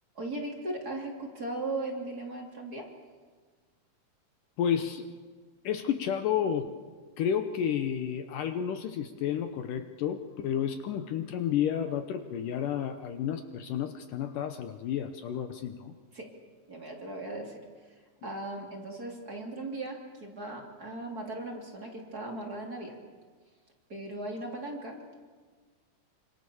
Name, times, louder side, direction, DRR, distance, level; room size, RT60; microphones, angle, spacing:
voice 1, 0.1-2.9 16.1-16.3 16.7-22.9 23.9-25.1, right 2 dB, 25° right, 0 dB, 3.2 m, -38 dB
voice 2, 4.6-5.1 5.6-6.7 7.2-15.9, left 9 dB, 70° left, 8 dB, 2.4 m, -31 dB
27.5 x 26.0 x 7.1 m, 1.5 s
omnidirectional pair, 4.2 m